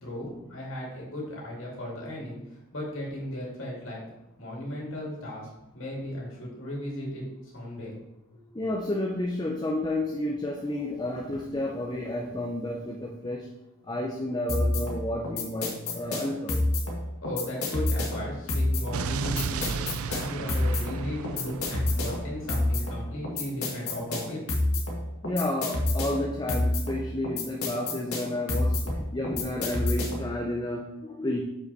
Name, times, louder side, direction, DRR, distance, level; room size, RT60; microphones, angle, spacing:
voice 1, 0.0-4.0 4.4-7.2 7.5-7.9 8.3-8.4 17.2-24.6, left 1 dB, 65° left, -3 dB, 2.3 m, -36 dB
voice 2, 8.5-13.5 13.9-16.6 25.2-31.4, left 1 dB, 20° left, -1 dB, 0.6 m, -31 dB
sound 1, 14.5-30.3, left 2 dB, 80° left, 1.7 m, -29 dB
Explosion, 18.9-23.0, right 5 dB, 85° right, 0.4 m, -34 dB
6.8 x 5.6 x 4.1 m, 0.93 s
head